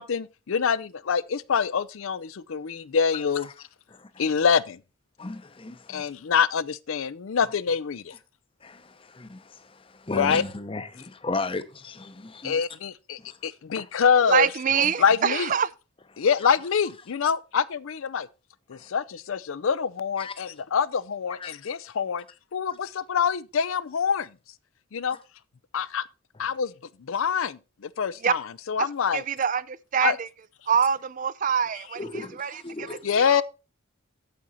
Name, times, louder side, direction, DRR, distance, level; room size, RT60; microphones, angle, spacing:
voice 1, 0.0-3.5 4.2-4.8 5.9-8.1 10.1-10.4 12.4-14.5 15.0-15.5 16.2-18.3 18.7-22.2 22.5-24.3 24.9-25.2 25.7-26.0 26.4-26.7 27.0-29.2 30.0-30.2 33.0-33.4, left 6 dB, 75° left, 0.5 m, -25 dB
voice 2, 3.9-4.2 5.2-6.1 8.6-12.6 13.2-13.4 13.8-13.9 14.7-14.9 16.1-16.5 18.7-18.9 20.2-20.3 21.3-21.6 32.0-33.0, left 3 dB, 25° left, 0.7 m, -36 dB
voice 3, 14.3-15.7 28.2-28.3 28.8-28.9 29.1-30.3 30.7-33.4, right 7 dB, 40° right, 0.4 m, -25 dB
8.6 x 7.6 x 4.1 m
head